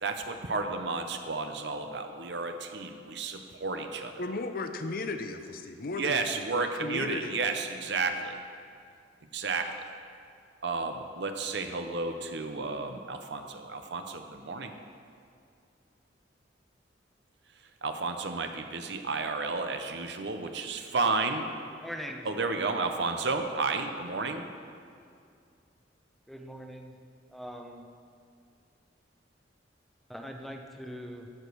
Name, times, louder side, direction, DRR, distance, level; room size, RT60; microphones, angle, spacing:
voice 1, 0.0-4.2 6.0-8.4 9.3-9.7 10.6-14.7 17.8-21.5 22.3-24.5, right 4 dB, 65° right, 6 dB, 0.8 m, -32 dB
voice 2, 4.2-7.4, left 3 dB, 55° left, 8 dB, 0.7 m, -35 dB
voice 3, 21.7-22.3 24.0-24.2 26.3-27.0 27.3-27.9 30.1-31.3, equal, ahead, 3 dB, 0.8 m, -42 dB
15.0 x 5.2 x 6.2 m, 2.4 s
head